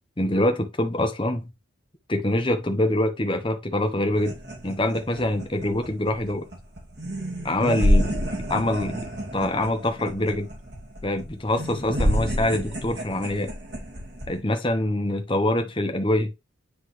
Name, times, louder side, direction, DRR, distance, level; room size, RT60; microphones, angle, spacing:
voice 1, 0.2-1.5 2.1-4.4 4.6-6.5 7.4-10.5 11.0-13.5 14.3-16.3, left 1 dB, 25° left, 1.0 m, -25 dB
sound 1, 4.1-14.4, equal, 50° right, 2.4 m, -28 dB
9.8 x 3.6 x 3.3 m
head